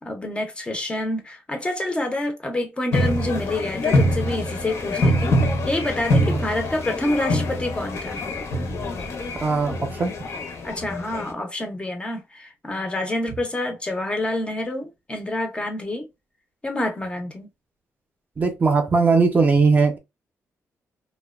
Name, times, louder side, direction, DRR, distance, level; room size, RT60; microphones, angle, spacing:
voice 1, 0.0-5.4 5.7-8.2 10.6-16.1 16.6-17.5, left 1 dB, 20° left, 0.5 m, -27 dB
sound 1, 2.9-11.3, left 1 dB, 60° left, 0.7 m, -24 dB
voice 2, 9.4-10.1 18.4-20.0, right 4 dB, 30° right, 0.5 m, -19 dB
2.7 x 2.1 x 2.2 m
wide cardioid pair, 145°, 6 cm